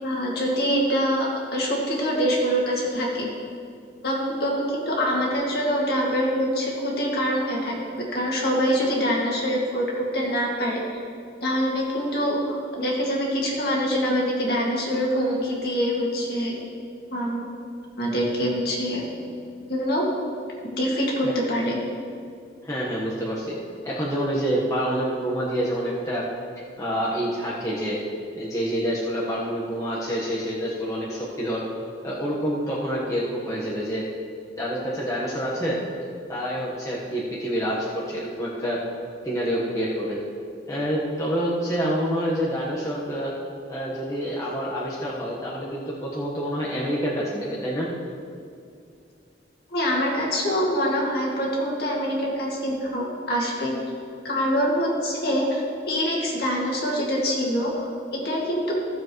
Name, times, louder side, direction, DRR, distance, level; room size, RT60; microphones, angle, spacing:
voice 1, 0.0-3.3 4.0-11.0 11.4-16.6 17.1-17.5 18.0-19.1 19.7-20.1 20.7-21.8 49.7-53.7 54.2-55.6 55.9-58.8, equal, 55° left, -3 dB, 2.1 m, -25 dB
voice 2, 22.6-23.6 23.8-26.3 26.8-28.0 28.3-31.6 32.0-34.0 34.6-35.8 36.3-38.8 39.2-40.2 40.7-43.3 43.7-47.9, equal, 15° left, -7 dB, 1.2 m, -27 dB
15.5 x 7.3 x 3.1 m, 2.4 s
head